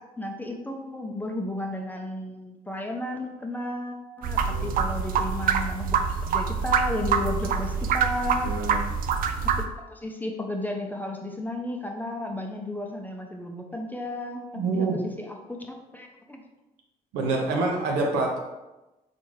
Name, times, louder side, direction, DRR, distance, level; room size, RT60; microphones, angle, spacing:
voice 1, 0.0-8.5 9.6-16.4, left 1 dB, 10° left, 2 dB, 0.7 m, -33 dB
sound 1, 4.2-9.6, right 6 dB, 50° right, 0.4 m, -25 dB
voice 2, 4.4-4.8 8.4-8.8 14.5-15.0 17.1-18.4, right 3 dB, 65° right, 0 dB, 0.8 m, -27 dB
4.1 x 3.5 x 3.2 m, 1.0 s
figure-of-eight pair, 45°, 19 cm